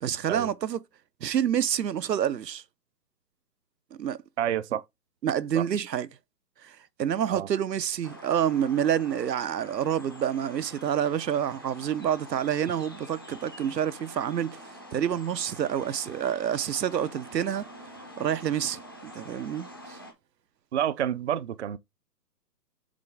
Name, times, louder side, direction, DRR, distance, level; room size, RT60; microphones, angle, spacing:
voice 1, 0.0-0.8 1.2-2.6 4.0-4.2 5.2-6.1 6.6-14.6 14.9-17.7 18.2-20.0, right 9 dB, 85° right, 0.7 m, -28 dB
voice 2, 4.4-4.8 5.5-5.6 7.3-7.5 20.7-21.8, right 10 dB, 45° right, 0.5 m, -28 dB
sound 1, 8.0-20.1, equal, 15° left, 0.4 m, -46 dB
7.5 x 3.8 x 3.4 m
figure-of-eight pair, 140°, 48 cm